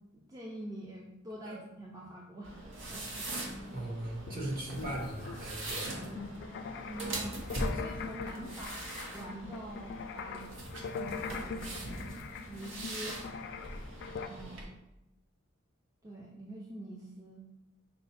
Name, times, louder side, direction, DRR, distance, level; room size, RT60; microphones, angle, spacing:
voice 1, 0.1-3.5 6.9-8.8 9.1-10.6 11.0-12.1 12.5-13.2 14.3-14.7 16.0-17.4, right 1 dB, 15° right, -3 dB, 0.4 m, -45 dB
sound 1, 2.4-14.6, right 1 dB, 65° right, 0.9 m, -41 dB
voice 2, 3.7-5.9, right 1 dB, 45° right, -3 dB, 1.1 m, -38 dB
sound 2, 4.2-14.3, left 5 dB, 55° left, 0.3 m, -42 dB
5.5 x 2.1 x 4.1 m, 0.91 s
head